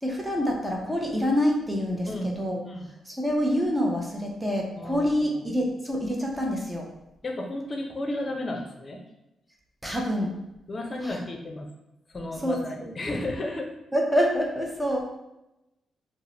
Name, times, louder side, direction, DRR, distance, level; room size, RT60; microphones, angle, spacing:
voice 1, 0.0-2.1 2.4-2.6 3.1-6.8 9.8-10.3 11.0-11.2 12.4-12.9 13.9-15.0, equal, 10° right, 0 dB, 0.6 m, -26 dB
voice 2, 2.1-2.4 2.6-2.9 4.7-5.4 7.2-9.0 10.7-11.7 12.1-13.7, left 1 dB, 40° left, 2 dB, 0.5 m, -33 dB
2.4 x 2.0 x 2.9 m, 0.91 s
supercardioid pair, 60°, 0 cm